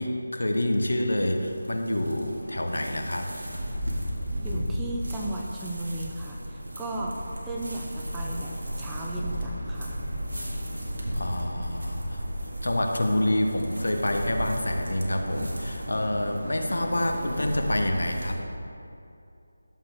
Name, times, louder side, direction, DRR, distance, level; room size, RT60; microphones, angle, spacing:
voice 1, 0.0-3.3 11.1-12.2 12.6-18.4, left 1 dB, 75° left, 4 dB, 1.1 m, -27 dB
sound 1, 0.6-18.3, equal, 70° right, 2.0 m, -34 dB
voice 2, 4.4-7.2 7.4-10.0, right 1 dB, 5° right, -3 dB, 0.7 m, -36 dB
12.0 x 7.2 x 3.6 m, 2.7 s
figure-of-eight pair, 160°, 0 cm